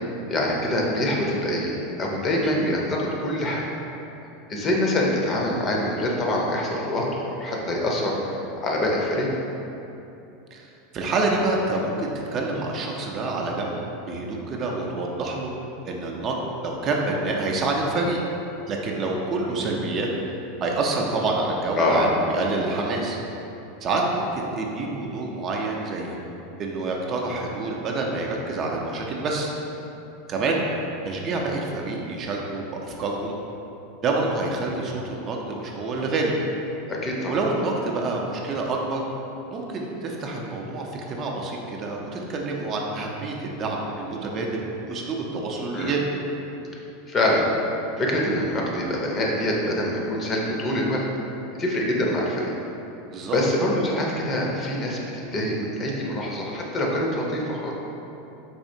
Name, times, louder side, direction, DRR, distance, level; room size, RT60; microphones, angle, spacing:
voice 1, 0.3-3.6 4.5-9.3 21.8-22.1 36.9-37.3 45.7-46.0 46.7-46.8 47.1-47.5 48.0-51.0 51.6-52.5 53.3-57.7, left 1 dB, 30° left, -2 dB, 0.6 m, -25 dB
voice 2, 2.4-2.7 10.5-13.8 14.1-15.5 15.8-18.2 18.7-20.1 20.6-23.2 23.8-26.2 26.6-29.5 30.3-30.6 31.0-33.3 34.0-36.4 37.3-39.1 39.5-46.1 53.1-53.4, right 3 dB, 40° right, 0 dB, 0.5 m, -27 dB
4.1 x 2.8 x 2.6 m, 2.9 s
hypercardioid pair, 110°, 0 cm